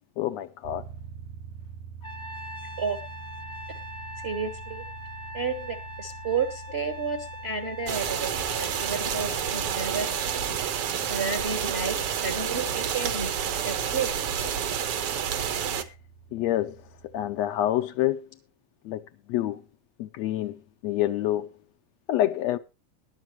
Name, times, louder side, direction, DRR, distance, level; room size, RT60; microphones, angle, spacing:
voice 1, 0.2-0.9 16.3-16.8 17.1-18.3 18.8-19.0 19.3-19.6 20.0-21.5 22.1-22.6, left 13 dB, 75° left, 1.7 m, -27 dB
sound 1, 0.6-17.4, right 6 dB, 85° right, 2.5 m, -46 dB
Trumpet, 2.0-10.6, left 2 dB, 30° left, 0.5 m, -42 dB
voice 2, 4.2-4.8 5.3-10.1 11.1-13.3 13.6-14.4, right 5 dB, 35° right, 1.1 m, -31 dB
sound 2, 7.9-15.8, right 8 dB, 60° right, 1.9 m, -29 dB
21.5 x 7.4 x 3.1 m
omnidirectional pair, 3.4 m